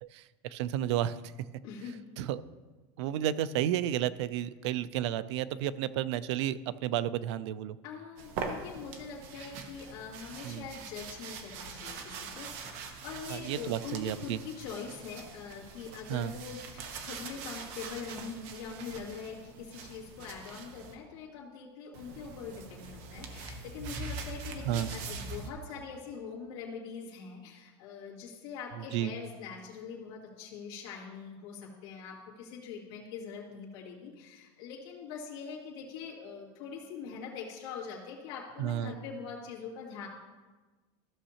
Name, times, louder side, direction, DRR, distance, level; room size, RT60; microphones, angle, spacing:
voice 1, 0.0-1.2 2.2-2.4 3.0-7.8 10.4-10.6 13.3-14.4 16.1-16.3 24.7-24.9 28.9-29.1 38.6-39.0, right 11 dB, 80° right, 16 dB, 0.4 m, -32 dB
voice 2, 1.6-2.1 7.8-40.1, left 6 dB, 60° left, -6 dB, 2.1 m, -43 dB
sound 1, 8.2-20.9 21.9-25.5, right 4 dB, 50° right, 0.9 m, -43 dB
14.5 x 6.4 x 2.8 m, 1.3 s
supercardioid pair, 175°, 14 cm